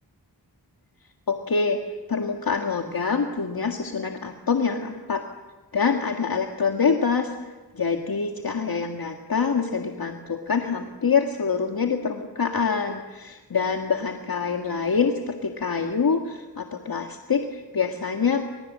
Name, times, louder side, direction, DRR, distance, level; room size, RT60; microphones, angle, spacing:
voice 1, 1.3-1.8 2.1-5.2 5.7-7.3 7.7-18.4, left 5 dB, 60° left, 3 dB, 1.9 m, -25 dB
29.0 x 26.5 x 7.6 m, 1.2 s
wide cardioid pair, 90°, 40 cm